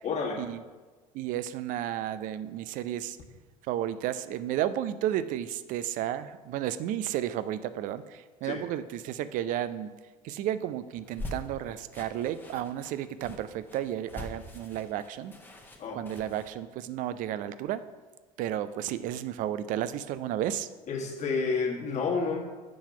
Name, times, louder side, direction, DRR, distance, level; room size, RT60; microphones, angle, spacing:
voice 1, 0.0-0.4 8.4-8.6 15.8-16.0 20.9-22.4, left 4 dB, 35° left, 0 dB, 1.6 m, -30 dB
voice 2, 1.1-3.2 3.7-9.9 10.2-15.3 15.9-17.8 18.4-20.7, right 11 dB, 45° right, 14 dB, 0.5 m, -32 dB
sound 1, 11.0-16.5, left 1 dB, 10° left, 1.1 m, -43 dB
7.5 x 5.8 x 5.5 m, 1.3 s
figure-of-eight pair, 65°, 20 cm